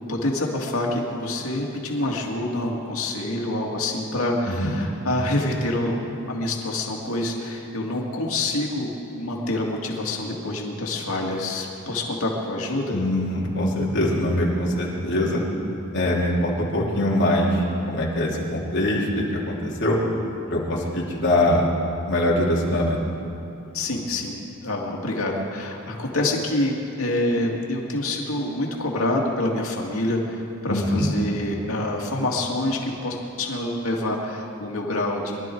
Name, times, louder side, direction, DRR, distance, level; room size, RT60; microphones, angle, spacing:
voice 1, 0.1-6.0 6.3-13.0 23.7-35.5, left 1 dB, 85° left, -1 dB, 2.3 m, -26 dB
voice 2, 12.9-15.4 15.9-20.0 20.5-21.7 22.0-23.0 30.7-31.1, left 1 dB, 60° left, -4 dB, 3.0 m, -23 dB
23.5 x 12.0 x 4.6 m, 2.8 s
head